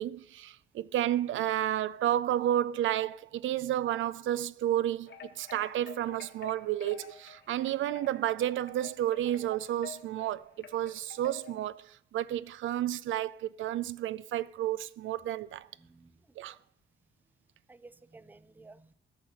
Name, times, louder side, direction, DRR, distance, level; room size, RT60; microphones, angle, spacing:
voice 1, 0.0-15.7 16.4-16.6, right 12 dB, 85° right, 0.4 m, -31 dB
sound 1, 5.1-11.7, left 6 dB, 65° left, 1.3 m, -50 dB
voice 2, 15.8-16.6 17.7-18.9, right 3 dB, 10° right, 0.4 m, -55 dB
13.0 x 5.7 x 5.7 m
cardioid pair, 90°, 20 cm